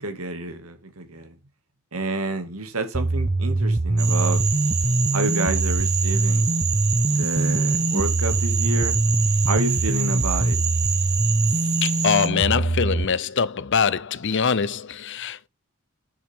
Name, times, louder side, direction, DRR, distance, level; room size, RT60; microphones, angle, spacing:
voice 1, 0.0-1.3 1.9-4.4 5.1-6.5 7.1-9.0 9.4-10.6, right 2 dB, 80° right, 2.3 m, -29 dB
sound 1, 2.9-13.1, right 2 dB, 25° right, 0.5 m, -23 dB
Frog, 4.0-12.3, right 8 dB, 50° right, 2.0 m, -28 dB
voice 2, 11.8-15.5, left 6 dB, 55° left, 0.7 m, -23 dB
10.0 x 7.5 x 3.6 m
head